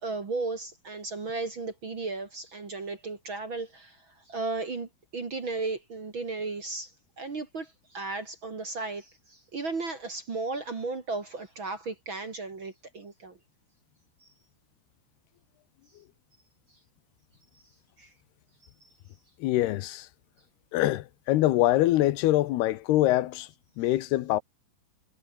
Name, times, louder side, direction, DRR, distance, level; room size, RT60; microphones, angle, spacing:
voice 1, 0.0-6.9 7.2-13.4 14.2-14.3 18.0-18.1, right 3 dB, 35° right, 2.5 m, -35 dB
voice 2, 19.4-20.1 20.7-23.5 23.8-24.4, left 15 dB, 85° left, 3.1 m, -24 dB
omnidirectional pair, 4.5 m